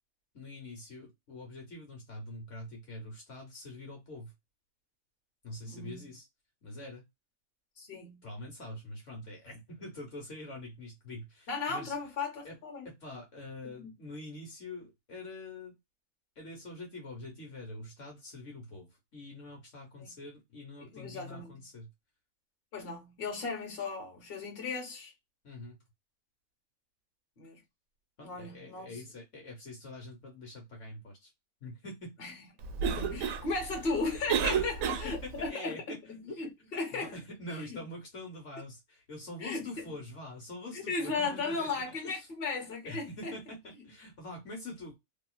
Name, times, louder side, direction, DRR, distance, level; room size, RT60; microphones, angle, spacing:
voice 1, 0.3-4.3 5.4-6.3 6.6-7.0 8.2-11.9 12.4-12.5 12.8-15.7 16.3-21.9 25.4-25.8 28.2-31.3 31.6-32.1 34.5-36.4 36.9-42.3 42.8-44.9, left 2 dB, 60° left, 1.5 m, -45 dB
voice 2, 5.7-6.1 7.8-8.3 11.5-12.9 13.8-13.9 20.0-20.1 20.8-21.5 22.7-25.1 27.4-27.6 28.2-29.0 32.2-32.3 32.7-37.1 37.6-37.8 39.4-39.6 40.7-43.3, left 4 dB, 45° left, 1.4 m, -36 dB
Cough, 32.6-35.5, right 7 dB, 75° right, 1.0 m, -32 dB
3.0 x 2.9 x 2.3 m
omnidirectional pair, 1.5 m